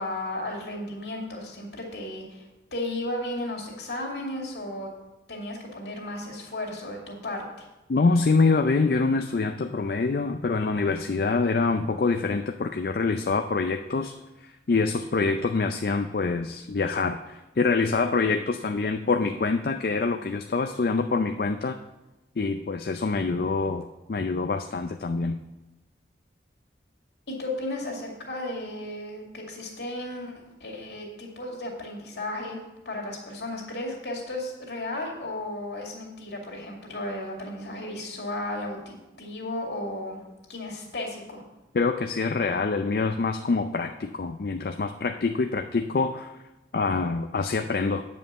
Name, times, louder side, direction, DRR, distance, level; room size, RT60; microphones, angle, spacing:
voice 1, 0.0-2.4 2.7-4.9 5.3-7.7 27.3-30.3 30.6-40.2 40.5-41.4, left 1 dB, 75° left, 0 dB, 2.5 m, -34 dB
voice 2, 7.9-14.1 14.4-21.8 22.4-25.4 41.7-46.3 46.7-48.0, left 4 dB, 55° left, 6 dB, 0.4 m, -25 dB
9.3 x 5.3 x 6.8 m, 1.0 s
head